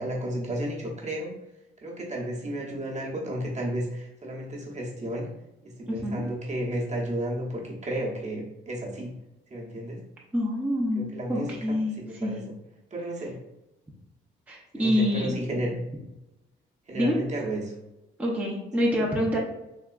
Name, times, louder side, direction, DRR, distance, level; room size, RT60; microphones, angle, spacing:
voice 1, 0.0-1.3 1.8-5.3 5.6-9.2 9.5-10.0 10.9-12.4 12.9-13.4 14.8-15.7 16.9-17.7 18.8-19.0, right 1 dB, 35° right, -2 dB, 0.9 m, -32 dB
voice 2, 5.9-6.2 10.3-12.4 14.5-15.4 16.9-17.2 18.2-19.4, left 1 dB, 10° right, -4 dB, 0.6 m, -26 dB
3.5 x 2.7 x 2.4 m, 0.95 s
cardioid pair, 90°, 20 cm